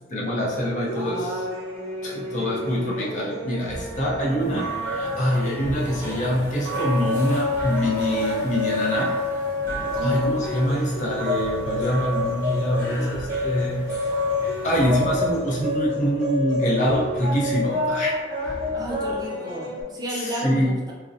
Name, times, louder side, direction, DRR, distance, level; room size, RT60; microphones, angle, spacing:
voice 1, 0.0-1.5 2.0-9.1 10.0-13.9 14.6-18.6 20.1-20.8, equal, 40° left, -4 dB, 0.5 m, -25 dB
sound 1, 0.8-19.8, left 2 dB, 40° right, 0.9 m, -29 dB
sound 2, 3.7-19.3, right 1 dB, 80° right, 0.5 m, -43 dB
sound 3, 4.4-15.4, right 3 dB, 10° left, 0.9 m, -36 dB
voice 2, 9.9-10.4 18.7-20.9, equal, 20° right, -4 dB, 0.3 m, -32 dB
2.5 x 2.0 x 2.5 m, 1.3 s
head